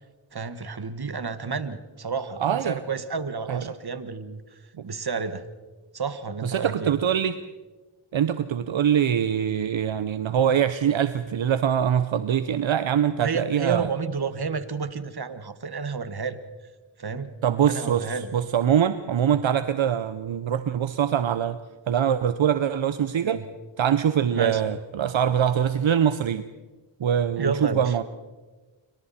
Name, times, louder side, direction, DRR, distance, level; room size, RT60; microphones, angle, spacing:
voice 1, 0.3-5.5 5.9-6.9 13.2-16.4 17.0-17.3 17.7-18.3 19.3-19.4 23.2-23.5 24.3-24.6 27.4-28.0, right 5 dB, 50° right, 11 dB, 1.7 m, -31 dB
voice 2, 2.4-2.8 3.5-3.6 6.4-7.4 8.1-13.9 17.4-21.6 21.9-23.4 23.8-26.4 27.0-28.0, right 9 dB, 75° right, 12 dB, 0.8 m, -23 dB
27.5 x 24.5 x 4.3 m, 1.2 s
cardioid pair, 45°, 48 cm